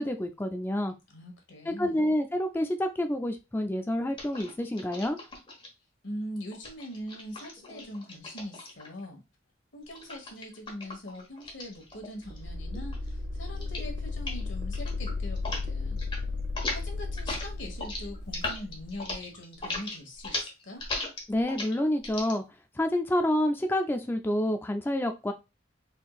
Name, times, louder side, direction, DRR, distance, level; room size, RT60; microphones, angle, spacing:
voice 1, 0.0-0.9 1.7-5.2 21.3-22.4 22.8-25.3, left 1 dB, 10° left, 6 dB, 0.3 m, -28 dB
voice 2, 1.1-2.0 6.0-9.2 9.7-16.0 16.7-20.8, left 1 dB, 85° left, 3 dB, 1.4 m, -42 dB
sound 1, 4.2-5.7 6.5-9.0 9.9-12.5 12.7-13.1 13.5-13.9 14.2-14.4 14.7-15.6 15.9-16.2 16.5-22.3, left 2 dB, 25° left, 1.3 m, -38 dB
sound 2, 12.2-18.9, left 3 dB, 60° right, 0.5 m, -34 dB
4.4 x 3.6 x 2.4 m, 0.26 s
head